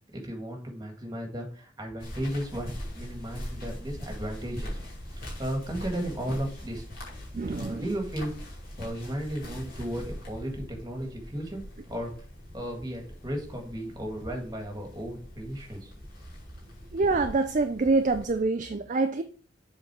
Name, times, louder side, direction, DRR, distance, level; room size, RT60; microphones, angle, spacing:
voice 1, 0.1-4.8 5.1-6.8 7.5-8.5 8.8-11.6 11.9-12.1 12.5-15.9 16.7-16.8, equal, 20° right, 1.7 m, -35 dB
sound 1, 2.0-18.4, equal, 45° left, 2.6 m, -42 dB
voice 2, 7.3-7.9 16.9-19.2, right 3 dB, 35° right, 0.4 m, -26 dB
7.4 x 3.9 x 4.7 m
head